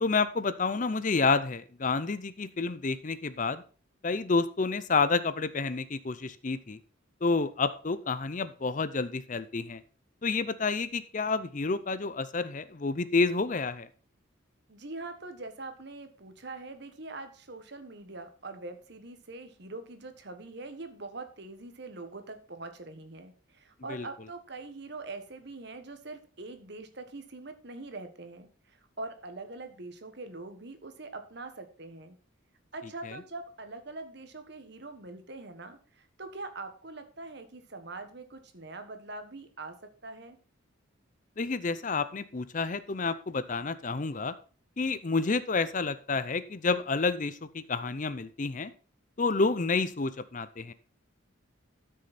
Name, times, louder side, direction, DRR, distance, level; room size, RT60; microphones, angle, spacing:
voice 1, 0.0-3.6 4.0-6.8 7.2-9.8 10.2-13.9 23.9-24.1 33.1-33.2 41.4-44.3 44.8-48.7 49.2-50.7, left 4 dB, 40° left, 14 dB, 0.6 m, -29 dB
voice 2, 14.7-32.2 32.7-40.4, right 3 dB, 55° right, 8 dB, 1.4 m, -43 dB
12.5 x 6.4 x 4.2 m, 0.39 s
head